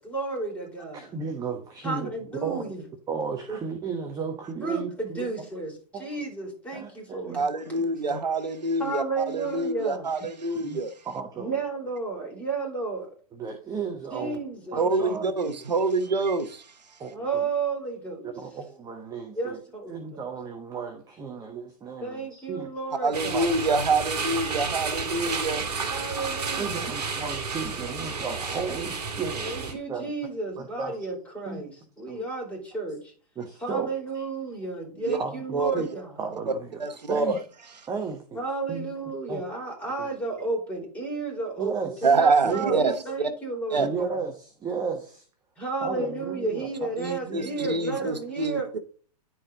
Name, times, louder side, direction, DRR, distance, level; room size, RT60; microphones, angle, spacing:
voice 1, 0.0-1.1 1.8-2.8 3.5-3.6 4.6-5.7 6.0-7.4 8.8-10.1 11.4-13.1 14.1-15.6 17.1-18.3 19.3-20.0 22.0-23.5 25.8-26.9 29.4-33.1 33.6-36.1 38.3-44.2 45.6-48.7, right 3 dB, 5° left, 4.5 m, -32 dB
voice 2, 0.9-2.1 2.4-2.7 3.1-5.3 5.9-6.2 6.7-8.2 10.6-10.8 11.0-11.6 13.3-14.4 14.7-15.2 17.0-17.5 18.2-19.6 19.9-22.7 23.3-23.5 26.6-30.1 30.6-31.0 31.5-31.6 32.1-32.2 33.4-33.9 34.1-34.2 35.1-35.9 36.2-37.4 37.9-38.4 38.7-38.9 39.3-39.4 40.0-40.1 41.6-42.1 42.4-42.9 43.8-45.2 45.8-46.9 47.2-47.5 48.0-48.1, right 5 dB, 15° right, 1.1 m, -34 dB
voice 3, 7.3-10.9 14.7-16.7 23.0-25.7 35.0-35.2 35.5-35.8 36.8-37.4 42.0-43.3 43.7-43.9 47.0-48.8, right 3 dB, 85° right, 1.0 m, -26 dB
sound 1, 23.1-29.7, right 4 dB, 70° right, 1.8 m, -31 dB
10.5 x 4.7 x 3.9 m
hypercardioid pair, 115°, 21 cm